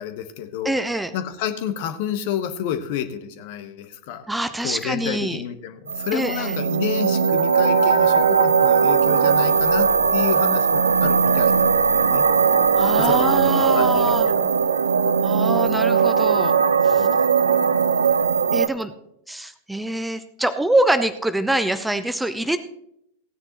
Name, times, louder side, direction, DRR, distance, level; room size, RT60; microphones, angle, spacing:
voice 1, 0.0-0.8 1.1-4.3 4.6-12.3 13.0-14.5 16.9-17.3, left 9 dB, 50° left, 10 dB, 1.0 m, -30 dB
voice 2, 0.6-1.1 4.3-5.4 6.1-6.5 12.7-14.3 15.2-16.5 16.8-17.1 18.5-18.9 19.3-22.6, right 1 dB, 5° right, 10 dB, 0.6 m, -24 dB
sound 1, 5.9-18.7, right 6 dB, 75° right, 0.6 m, -19 dB
17.0 x 9.5 x 3.0 m, 0.76 s
figure-of-eight pair, 90°, 0 cm